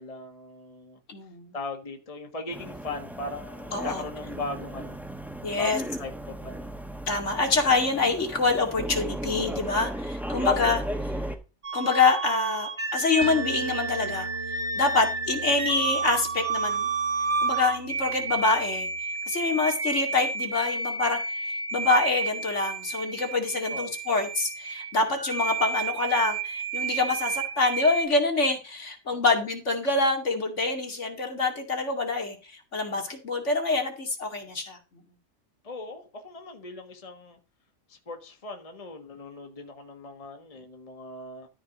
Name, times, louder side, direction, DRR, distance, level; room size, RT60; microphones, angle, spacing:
voice 1, 0.0-1.0 1.5-5.0 5.5-6.7 10.5-10.7 23.7-23.9 29.2-29.4 35.6-37.4 37.9-41.5, left 3 dB, 25° left, 1.5 m, -39 dB
voice 2, 1.1-1.5 3.7-4.0 5.4-5.8 7.1-10.8 11.1-11.2 11.7-16.9 17.4-18.9 19.3-34.8, left 3 dB, 60° left, 2.7 m, -26 dB
sound 1, 2.5-11.4, equal, ahead, 1.3 m, -35 dB
sound 2, 11.6-28.0, right 4 dB, 40° right, 1.7 m, -31 dB
sound 3, 13.2-19.0, right 2 dB, 60° right, 2.0 m, -41 dB
13.0 x 4.8 x 6.0 m
omnidirectional pair, 1.4 m